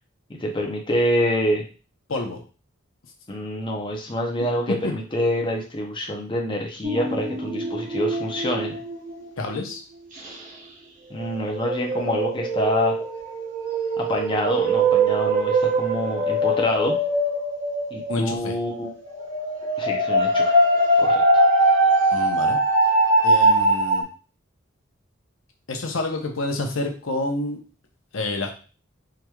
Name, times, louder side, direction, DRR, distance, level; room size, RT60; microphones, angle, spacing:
voice 1, 0.3-1.6 3.3-8.8 11.1-13.0 14.0-17.0 17.9-18.9 19.8-20.6 21.0-21.4, equal, 25° left, 0 dB, 0.6 m, -26 dB
voice 2, 2.1-2.4 9.4-9.8 18.1-18.5 22.1-22.6 23.2-24.0 25.7-27.6 28.1-28.5, left 2 dB, 75° left, 3 dB, 0.8 m, -28 dB
sound 1, 6.8-9.7 10.2-10.3 11.2-18.6 18.8-24.0, right 1 dB, 40° right, 1.0 m, -22 dB
4.7 x 3.0 x 2.3 m, 0.36 s
head